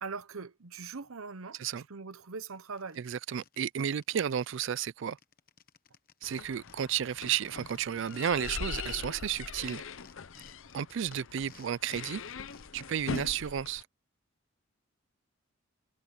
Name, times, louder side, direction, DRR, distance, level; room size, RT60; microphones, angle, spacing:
voice 1, 0.0-1.6 1.9-3.0, right 4 dB, 80° right, 0.9 m, -41 dB
sound 1, 2.2-2.3 2.6-4.6 4.8-4.9 5.1-8.6 8.9-13.1, left 6 dB, 45° left, 1.1 m, -57 dB
voice 2, 3.0-5.2 6.2-9.8 10.7-12.2 12.7-13.8, right 9 dB, 60° right, 0.4 m, -32 dB
sound 2, 6.2-13.8, left 5 dB, 65° left, 0.7 m, -42 dB
head